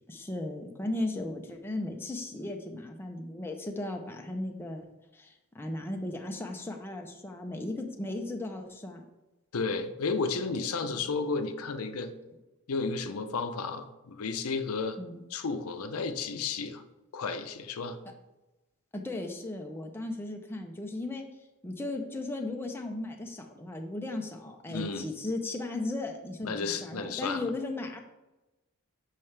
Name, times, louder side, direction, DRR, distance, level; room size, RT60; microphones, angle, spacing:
voice 1, 0.1-4.9 5.1-9.0 10.8-11.0 15.0-15.2 18.9-21.3 21.6-28.0, left 2 dB, 10° left, 2 dB, 0.5 m, -36 dB
voice 2, 9.5-12.1 12.7-15.0 15.3-16.8 17.1-18.0 24.7-25.1 26.4-27.5, left 4 dB, 85° left, 9 dB, 0.6 m, -32 dB
7.2 x 5.6 x 3.3 m, 1.0 s
head